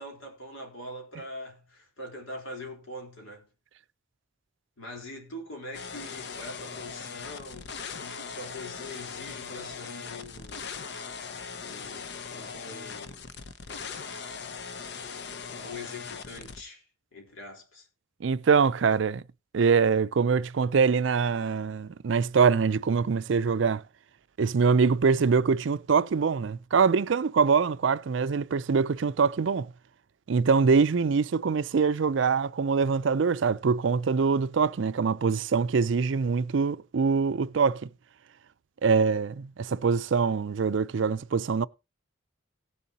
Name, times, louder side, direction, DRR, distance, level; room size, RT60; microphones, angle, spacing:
voice 1, 0.0-3.5 4.8-10.8 11.6-13.3 13.7-14.3 15.5-16.8 17.1-17.9, left 1 dB, 80° left, 3.7 m, -43 dB
sound 1, 5.7-16.6, left 5 dB, 55° left, 0.7 m, -40 dB
voice 2, 18.2-19.2 19.5-23.8 24.4-29.7 30.3-37.9 38.8-41.7, right 5 dB, 65° right, 0.4 m, -24 dB
18.0 x 7.0 x 2.8 m
head